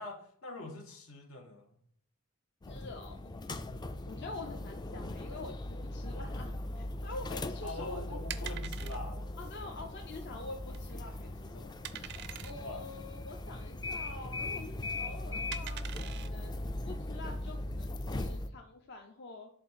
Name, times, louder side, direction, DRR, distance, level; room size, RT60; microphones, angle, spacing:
voice 1, 0.0-1.8 7.6-9.7 12.6-12.9, left 2 dB, 85° left, 3 dB, 1.4 m, -44 dB
sound 1, 2.6-18.5, left 1 dB, 20° left, 0.3 m, -39 dB
voice 2, 2.7-3.8 4.1-8.2 9.4-19.5, left 2 dB, 55° left, 3 dB, 0.6 m, -47 dB
sound 2, 7.0-17.7, right 11 dB, 55° right, 0.4 m, -47 dB
7.4 x 2.6 x 5.6 m, 0.65 s
head